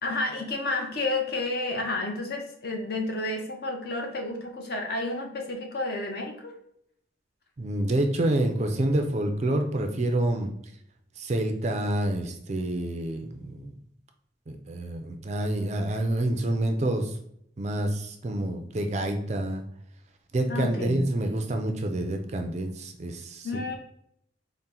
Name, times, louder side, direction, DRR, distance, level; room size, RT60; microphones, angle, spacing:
voice 1, 0.0-6.5 20.5-21.0 23.4-23.7, left 2 dB, 50° left, 2 dB, 0.7 m, -31 dB
voice 2, 7.6-10.5 11.2-13.7 14.5-17.2 17.6-19.6 20.3-23.7, right 1 dB, 35° right, 5 dB, 0.4 m, -28 dB
4.2 x 2.1 x 3.7 m, 0.72 s
head